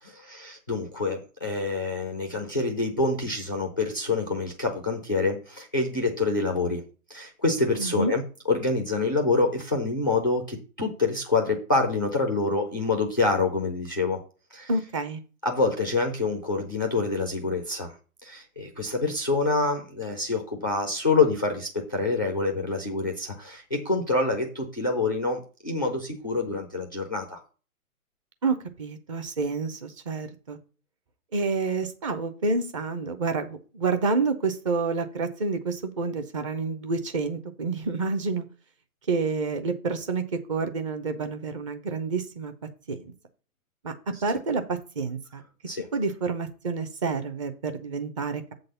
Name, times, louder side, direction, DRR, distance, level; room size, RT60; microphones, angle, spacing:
voice 1, 0.0-6.8 7.1-8.2 8.5-14.2 14.5-14.7 15.4-17.9 18.2-27.4 45.7-45.9, left 3 dB, 15° left, 4 dB, 0.4 m, -26 dB
voice 2, 7.8-8.1 14.7-15.2 28.4-30.6 31.3-38.4 39.1-42.5 42.9-43.1 43.8-43.9 44.2-45.4 45.9-48.4, right 4 dB, 20° right, 8 dB, 0.6 m, -28 dB
7.6 x 3.9 x 6.7 m, 0.36 s
hypercardioid pair, 145°, 43 cm